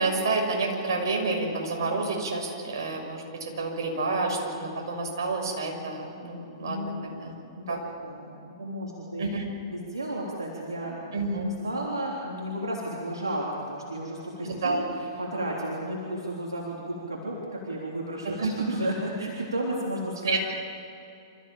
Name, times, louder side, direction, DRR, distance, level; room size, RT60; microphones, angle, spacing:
voice 1, 0.0-7.3 7.7-7.8 9.2-9.4 11.1-11.4 14.4-14.8 18.4-18.5 20.3-20.4, right 3 dB, 65° right, 1 dB, 6.5 m, -29 dB
voice 2, 6.6-7.2 7.6-9.2 9.7-11.0 11.4-20.4, right 1 dB, 85° right, -3 dB, 3.6 m, -33 dB
27.5 x 15.0 x 8.9 m, 2.6 s
hypercardioid pair, 115°, 2 cm